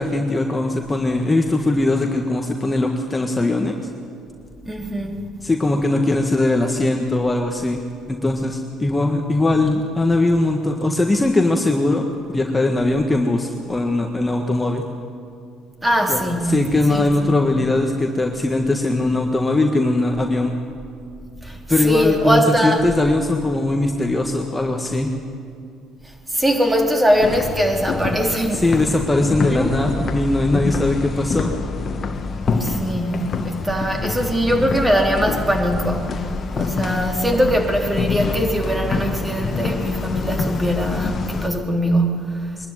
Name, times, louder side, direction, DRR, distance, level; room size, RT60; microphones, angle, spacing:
voice 1, 0.0-3.8 5.4-7.8 8.1-14.8 16.1-16.2 16.5-20.5 21.7-25.1 28.5-31.5 42.6-42.7, left 2 dB, 15° left, 2 dB, 1.6 m, -20 dB
voice 2, 4.6-5.3 15.8-16.6 16.9-17.4 21.4-22.8 26.3-28.6 29.5-29.7 32.6-36.2 36.5-42.5, equal, 15° right, 2 dB, 3.3 m, -21 dB
sound 1, 27.2-41.5, left 4 dB, 45° left, 1.6 m, -26 dB
22.0 x 12.5 x 9.9 m, 2.3 s
supercardioid pair, 80°, 0 cm